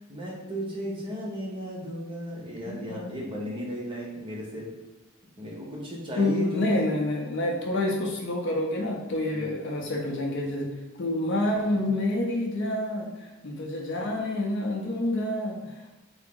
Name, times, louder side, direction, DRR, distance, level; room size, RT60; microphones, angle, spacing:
voice 1, 0.0-4.7 5.4-6.7 9.3-9.5 11.7-11.9, equal, 25° right, -4 dB, 0.7 m, -35 dB
voice 2, 2.7-3.1 6.2-10.7 11.0-16.0, left 1 dB, 55° left, 1 dB, 0.5 m, -28 dB
3.4 x 2.0 x 3.6 m, 1.0 s
head